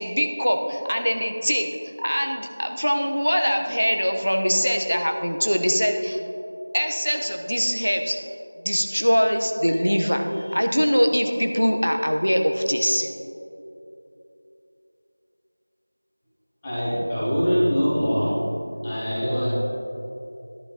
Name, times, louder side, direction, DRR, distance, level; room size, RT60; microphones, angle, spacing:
voice 1, 0.0-1.7 2.0-6.2 6.7-8.2 8.6-13.1, equal, 85° left, 4 dB, 1.2 m, -22 dB
voice 2, 16.6-18.4 18.8-19.5, equal, 10° left, -10 dB, 1.3 m, -23 dB
13.0 x 11.0 x 3.1 m, 2.9 s
figure-of-eight pair, 175°, 0 cm